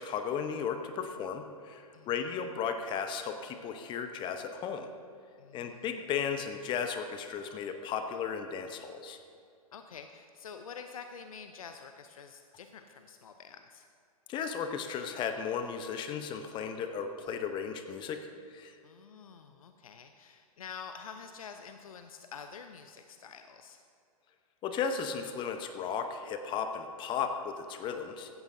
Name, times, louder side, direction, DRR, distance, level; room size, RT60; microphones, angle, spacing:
voice 1, 0.0-4.9 5.5-9.2 14.3-18.2 18.5-18.8 24.6-28.3, left 6 dB, 25° left, 7 dB, 0.9 m, -35 dB
voice 2, 5.4-5.9 9.7-13.9 18.8-23.8, left 6 dB, 70° left, 7 dB, 0.8 m, -47 dB
16.0 x 14.0 x 2.7 m, 2.5 s
figure-of-eight pair, 110°, 19 cm